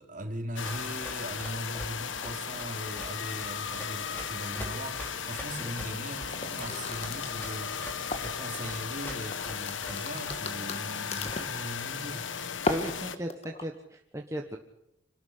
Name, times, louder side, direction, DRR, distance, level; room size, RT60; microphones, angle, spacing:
voice 1, 0.0-7.8 8.2-12.3, right 1 dB, 40° right, 4 dB, 3.1 m, -40 dB
sound 1, 0.6-13.2, left 7 dB, 80° left, 1.3 m, -36 dB
Run, 0.6-10.7, equal, 10° left, 3.8 m, -44 dB
sound 2, 6.3-8.6 9.0-11.6 12.5-13.6, left 2 dB, 35° left, 1.7 m, -35 dB
voice 2, 12.7-14.6, equal, 15° right, 1 dB, 1.3 m, -36 dB
26.0 x 12.5 x 10.0 m, 0.83 s
head